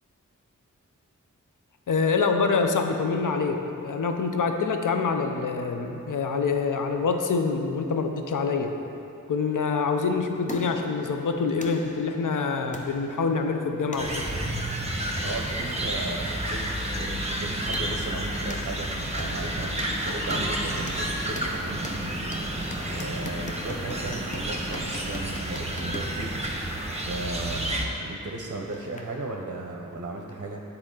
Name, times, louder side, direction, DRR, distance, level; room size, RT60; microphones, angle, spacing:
voice 1, 1.9-8.7 9.3-14.3, left 4 dB, 70° left, 5 dB, 0.6 m, -26 dB
sound 1, 10.5-29.3, left 1 dB, 25° left, 0.7 m, -42 dB
sound 2, 14.0-27.9, right 1 dB, 20° right, 1.0 m, -30 dB
voice 2, 15.2-26.3 26.6-30.6, right 2 dB, 45° right, 1 dB, 0.7 m, -36 dB
8.9 x 4.3 x 3.8 m, 2.7 s
cardioid pair, 45°, 32 cm